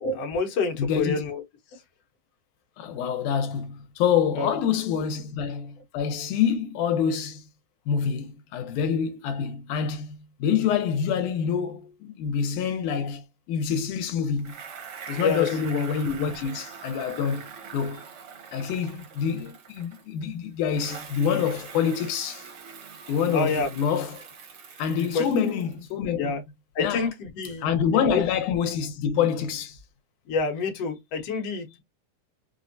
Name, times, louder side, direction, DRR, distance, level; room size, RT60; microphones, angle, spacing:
voice 1, 0.0-1.4 4.3-4.6 15.2-15.5 23.3-23.7 24.9-25.3 26.2-26.4 26.7-28.2 30.3-31.8, left 4 dB, 60° left, 1.8 m, -28 dB
voice 2, 0.8-1.2 2.8-7.5 7.9-14.5 15.1-18.0 18.5-22.5 23.1-24.2 24.8-26.4 26.8-27.1 27.6-29.8, left 7 dB, 80° left, 2.2 m, -26 dB
Bicycle, 14.4-20.2 20.7-25.9, right 6 dB, 65° right, 1.3 m, -43 dB
5.3 x 2.1 x 2.6 m
omnidirectional pair, 3.5 m